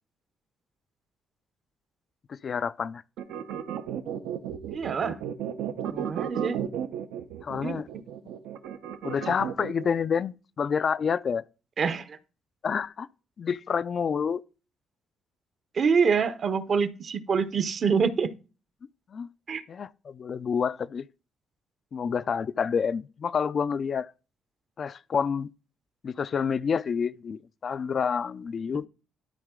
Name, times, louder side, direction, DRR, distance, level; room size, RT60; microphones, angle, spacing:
voice 1, 2.3-3.0 7.4-7.9 9.0-11.4 12.6-13.1 13.4-14.4 19.1-19.3 19.7-21.1 21.9-24.1 24.8-25.5 26.0-28.9, left 6 dB, 50° left, 0.3 m, -28 dB
sound 1, 3.2-9.9, right 9 dB, 85° right, 0.6 m, -33 dB
voice 2, 4.7-5.2 5.9-6.6 7.6-7.8 11.8-12.2 15.7-18.3 19.5-19.6, right 6 dB, 50° right, 0.7 m, -26 dB
12.5 x 4.1 x 3.7 m
cardioid pair, 90°, 0 cm